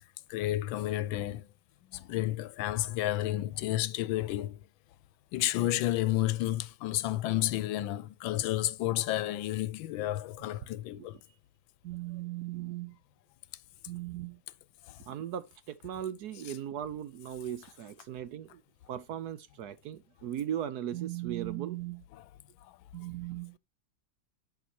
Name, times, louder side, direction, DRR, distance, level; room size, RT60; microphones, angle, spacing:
voice 1, 0.3-1.5 1.9-4.6 5.3-11.2 14.9-15.0 22.1-22.2, left 15 dB, 90° left, 1.4 m, -31 dB
voice 2, 11.8-13.0 13.9-14.4 15.1-18.6 18.9-22.0 22.9-23.6, right 11 dB, 70° right, 1.0 m, -38 dB
10.5 x 6.9 x 2.9 m
omnidirectional pair, 2.1 m